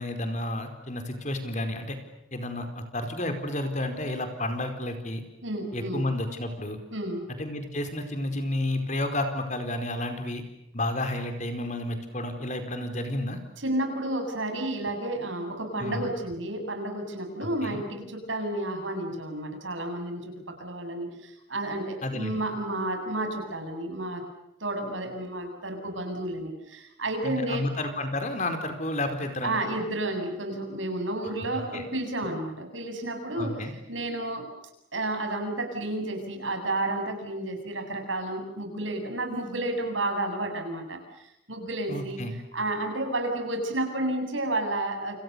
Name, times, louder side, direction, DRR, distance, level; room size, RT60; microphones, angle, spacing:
voice 1, 0.0-2.0 2.3-5.2 5.7-6.8 7.4-10.4 10.7-13.4 15.8-16.0 17.4-17.8 22.0-22.4 27.2-29.7 31.5-31.8 33.3-33.7 41.9-42.4, left 1 dB, 35° left, 7 dB, 4.6 m, -31 dB
voice 2, 5.4-6.0 6.9-7.2 13.6-24.2 24.6-27.7 29.4-34.4 34.9-42.2 42.5-45.2, right 1 dB, 75° right, 5 dB, 7.8 m, -31 dB
30.0 x 28.5 x 7.0 m, 0.84 s
head